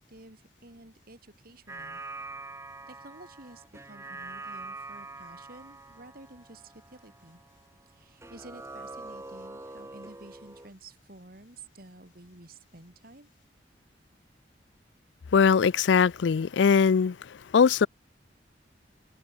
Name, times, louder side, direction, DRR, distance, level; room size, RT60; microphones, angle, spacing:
voice 1, 0.0-2.0 2.9-7.4 7.9-13.3, right 2 dB, 55° right, 3.5 m, -51 dB
sound 1, 1.7-7.9 8.2-10.7, right 3 dB, 15° right, 1.2 m, -44 dB
voice 2, 15.3-17.2 17.5-17.9, left 6 dB, 80° left, 0.4 m, -21 dB
head